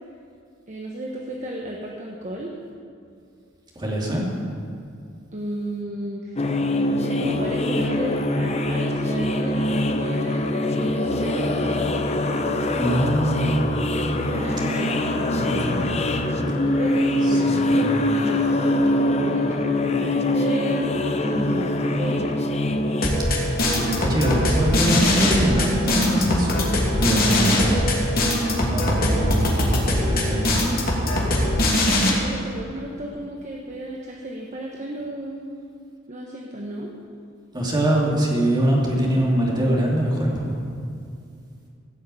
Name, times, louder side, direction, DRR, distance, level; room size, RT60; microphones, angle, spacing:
voice 1, 0.7-2.5 5.3-6.5 6.9-11.8 14.3-15.9 16.6-20.9 21.2-22.4 29.0-29.8 32.1-35.5 36.1-36.9, right 1 dB, 40° right, -2 dB, 1.2 m, -33 dB
voice 2, 3.7-4.4 12.8-13.6 15.3-15.9 17.2-17.8 23.6-26.7 27.0-27.9 28.6-29.7 30.0-30.6 37.5-40.6, right 1 dB, 20° right, -3 dB, 2.8 m, -23 dB
sound 1, 6.4-23.1, left 1 dB, 35° left, 0.8 m, -23 dB
sound 2, 23.0-32.1, left 1 dB, 50° left, 2.7 m, -21 dB
16.0 x 6.6 x 8.5 m, 2.4 s
head